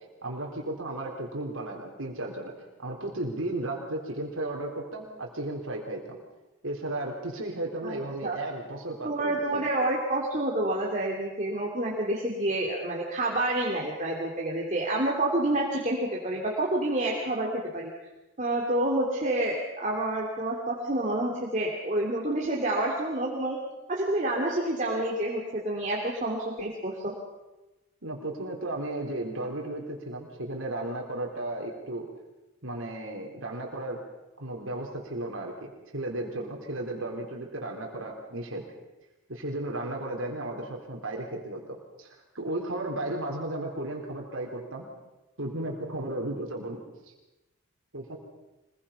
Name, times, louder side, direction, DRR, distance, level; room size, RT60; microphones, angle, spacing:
voice 1, 0.2-6.2 6.6-9.6 28.0-32.1 32.6-34.0 34.4-38.6 39.3-44.9 45.4-46.8 47.9-48.2, right 1 dB, 75° right, 0 dB, 3.7 m, -34 dB
voice 2, 7.8-8.4 9.0-17.9 18.4-23.6 23.9-27.1, right 1 dB, 35° right, -2 dB, 2.9 m, -28 dB
25.0 x 21.5 x 5.8 m, 1.0 s
head